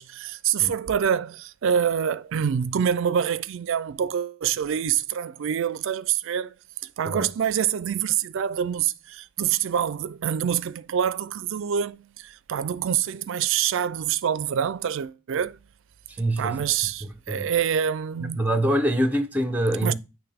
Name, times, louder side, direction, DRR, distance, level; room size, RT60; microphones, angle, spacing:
voice 1, 0.0-6.5 7.0-15.6 16.4-18.4 19.8-19.9, right 8 dB, 65° right, 0.4 m, -26 dB
voice 2, 16.1-16.7 17.0-17.4 18.2-19.9, right 1 dB, 10° right, 0.6 m, -25 dB
9.1 x 3.0 x 3.4 m
head